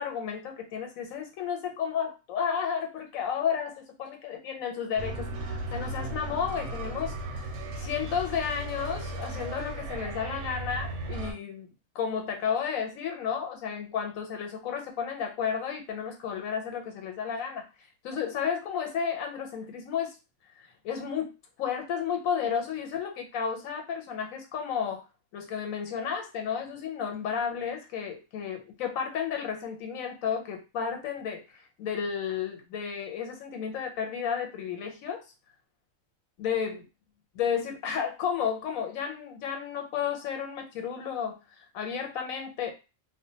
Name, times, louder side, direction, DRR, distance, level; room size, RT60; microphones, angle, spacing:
voice 1, 0.0-11.7 11.9-20.2 20.8-21.3 21.6-25.0 25.3-35.2 36.4-36.9 37.3-42.7, left 7 dB, 85° left, 4 dB, 1.0 m, -32 dB
sound 1, 5.0-11.3, right 2 dB, 70° right, 0.8 m, -36 dB
2.4 x 2.1 x 2.7 m, 0.29 s
omnidirectional pair, 1.4 m